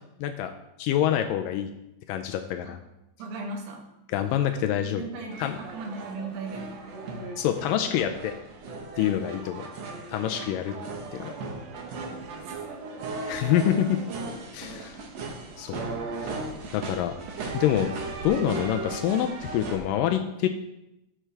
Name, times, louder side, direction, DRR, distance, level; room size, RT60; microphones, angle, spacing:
voice 1, 0.2-0.5 0.8-1.7 2.1-2.8 4.1-5.0 5.4-5.6 7.4-8.3 9.0-9.7 10.1-10.7 11.1-11.3 13.3-14.0 14.5-15.0 15.6-15.8 16.2-16.4 16.7-17.1 17.5-17.9 18.2-20.5, left 11 dB, 90° left, 6 dB, 1.9 m, -26 dB
voice 2, 3.2-3.9 5.0-6.7 8.9-9.2 10.4-10.5 12.0-12.5, right 3 dB, 80° right, 2 dB, 3.4 m, -38 dB
sound 1, 5.3-19.8, right 3 dB, 65° right, 1.7 m, -37 dB
13.5 x 7.5 x 3.4 m, 0.88 s
omnidirectional pair, 4.6 m